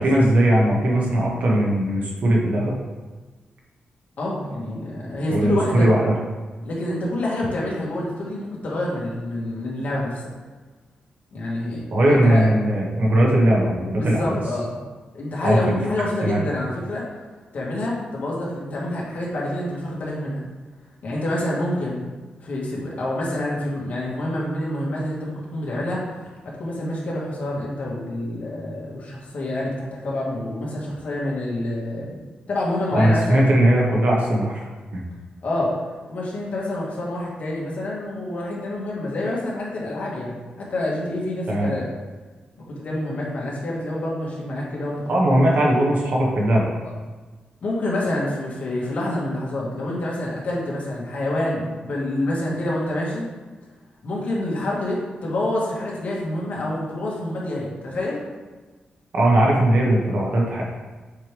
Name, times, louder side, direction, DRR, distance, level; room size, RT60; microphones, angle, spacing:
voice 1, 0.0-2.7 5.3-6.1 11.9-14.4 15.4-15.8 16.2-16.4 32.9-34.6 34.9-35.0 41.5-41.7 45.1-46.7 59.1-60.6, right 1 dB, 60° right, -2 dB, 1.4 m, -19 dB
voice 2, 4.2-5.9 6.6-10.3 11.3-12.5 13.9-14.8 15.1-17.0 17.5-20.5 21.0-22.1 22.4-32.1 32.5-33.5 35.4-35.7 36.1-41.9 42.7-45.4 46.8-46.9 47.6-53.3 54.0-58.2, left 1 dB, 55° left, -5 dB, 1.9 m, -27 dB
6.6 x 4.7 x 3.5 m, 1.3 s
wide cardioid pair, 130°, 3 cm